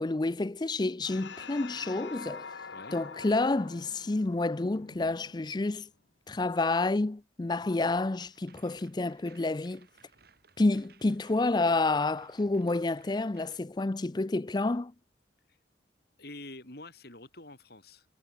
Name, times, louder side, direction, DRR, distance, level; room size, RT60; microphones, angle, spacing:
voice 1, 0.0-2.5 2.9-5.9 6.3-9.9 10.6-14.9, left 2 dB, 25° left, 0.5 m, -29 dB
sound 1, 1.0-5.8, left 5 dB, 80° left, 1.2 m, -45 dB
sound 2, 8.2-13.6, right 5 dB, 55° right, 4.0 m, -61 dB
voice 2, 16.2-18.1, left 2 dB, 60° left, 5.7 m, -47 dB
head